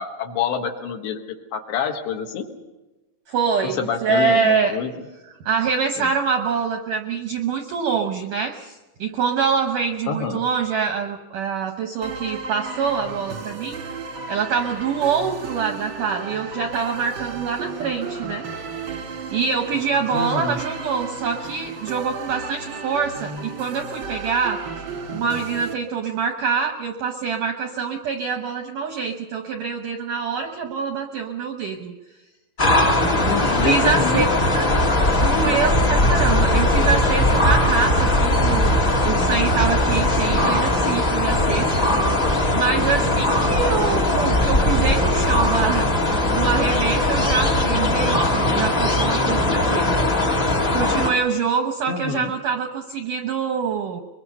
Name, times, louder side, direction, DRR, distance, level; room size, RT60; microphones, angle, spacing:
voice 1, 0.0-2.5 3.6-4.9 6.0-6.1 10.1-10.4 20.1-20.6 33.1-34.3 34.7-35.1 51.9-52.3, left 6 dB, 70° left, 4 dB, 3.4 m, -27 dB
voice 2, 3.3-4.8 5.4-13.8 14.3-18.4 19.3-24.6 25.1-31.9 33.6-34.3 34.6-34.7 35.2-38.7 39.0-41.8 42.5-50.0 50.7-54.0, right 6 dB, 75° right, 4 dB, 1.9 m, -25 dB
sound 1, 12.0-25.7, right 4 dB, 55° right, 1.3 m, -34 dB
sound 2, 32.6-51.1, left 1 dB, 45° left, 1.1 m, -19 dB
23.5 x 22.5 x 5.6 m, 1.1 s
omnidirectional pair, 5.4 m